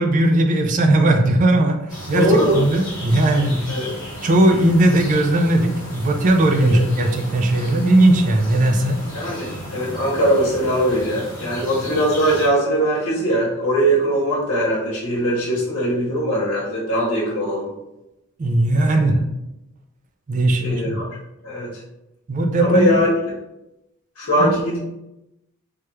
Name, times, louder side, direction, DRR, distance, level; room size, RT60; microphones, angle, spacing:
voice 1, 0.0-1.8 2.1-3.7 4.2-9.0 18.4-19.2 20.3-21.0 22.3-22.9 24.4-24.5, right 1 dB, 35° right, 5 dB, 0.3 m, -17 dB
sound 1, 1.9-12.5, equal, 20° left, 1.0 m, -34 dB
voice 2, 2.1-2.6 3.7-3.9 6.6-6.8 9.1-17.7 18.7-19.1 20.6-21.1 21.4-21.8 22.6-23.1 24.2-24.8, equal, 80° left, -5 dB, 0.9 m, -21 dB
3.2 x 2.3 x 3.0 m, 0.91 s
head